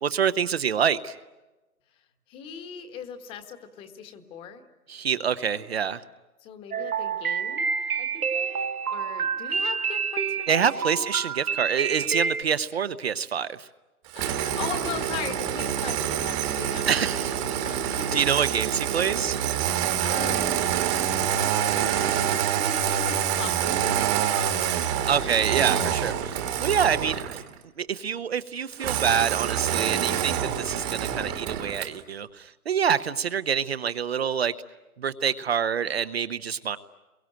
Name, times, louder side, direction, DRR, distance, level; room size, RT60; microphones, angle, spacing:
voice 1, 0.0-1.2 4.9-6.0 10.5-13.7 16.9-17.6 17.8-19.4 25.1-27.4 27.8-34.5 35.0-36.8, right 7 dB, 45° right, 11 dB, 0.9 m, -26 dB
voice 2, 2.3-4.6 6.4-10.7 11.0-11.1 14.1-17.3 17.6-18.2 19.7-20.4 21.3-25.4, left 7 dB, 10° left, 9 dB, 1.5 m, -39 dB
sound 1, 6.7-12.4, right 6 dB, 75° right, 1.3 m, -28 dB
Engine starting, 14.1-27.5 28.8-32.0, right 9 dB, 15° right, 1.4 m, -26 dB
28.5 x 23.0 x 9.1 m, 1.1 s
hypercardioid pair, 155°, 44 cm